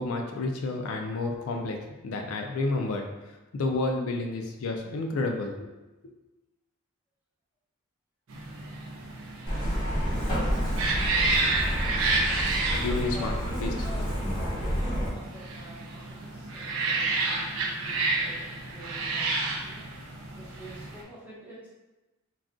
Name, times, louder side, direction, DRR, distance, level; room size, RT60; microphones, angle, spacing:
voice 1, 0.0-1.8 2.0-3.1 3.5-5.5 12.7-13.3 13.6-13.7, left 2 dB, 80° left, 3 dB, 0.4 m, -30 dB
sound 1, 8.3-21.0, right 3 dB, 70° right, 0.5 m, -31 dB
Truck, 9.5-15.1, equal, 20° left, 0.9 m, -29 dB
voice 2, 13.1-14.2 14.7-19.8 20.3-21.7, equal, 10° right, -9 dB, 0.9 m, -45 dB
2.4 x 2.3 x 3.6 m, 1.1 s
head